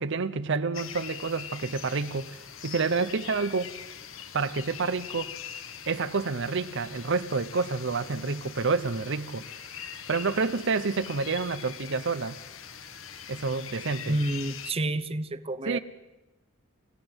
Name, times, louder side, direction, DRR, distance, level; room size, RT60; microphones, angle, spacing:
voice 1, 0.0-3.7 4.3-5.3 5.9-9.5 10.1-12.4 13.3-14.2 15.7-15.8, right 4 dB, 60° right, 0.8 m, -29 dB
sound 1, 0.7-14.7, left 8 dB, 75° left, 1.4 m, -42 dB
voice 2, 14.1-15.8, right 1 dB, 30° right, 0.9 m, -29 dB
28.5 x 16.0 x 8.0 m
head